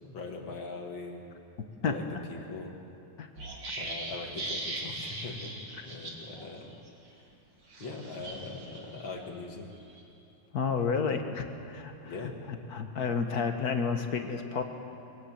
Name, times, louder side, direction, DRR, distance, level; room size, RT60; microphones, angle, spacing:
voice 1, 0.0-1.2 1.9-2.8 3.8-6.8 7.8-9.7 11.2-11.3 12.1-12.4, left 3 dB, 90° left, 2 dB, 2.9 m, -41 dB
sound 1, 3.4-6.4 6.7-6.9 7.7-9.1 9.6-10.0, right 2 dB, 70° right, 3.5 m, -39 dB
voice 2, 10.5-12.3 12.7-14.6, left 5 dB, 55° left, 6 dB, 1.7 m, -30 dB
24.0 x 17.5 x 7.9 m, 3.0 s
omnidirectional pair, 2.1 m